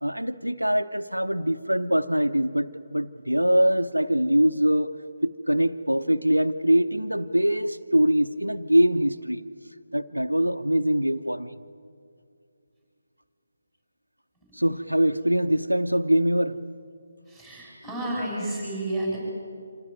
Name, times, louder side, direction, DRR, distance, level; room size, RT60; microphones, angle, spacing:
voice 1, 0.0-5.0 5.2-9.4 9.9-11.6 14.5-16.7, equal, 85° right, 0.8 m, -23 dB
voice 2, 17.3-19.2, right 1 dB, 5° left, 8.0 m, -31 dB
26.0 x 17.0 x 9.1 m
figure-of-eight pair, 150°, 0 cm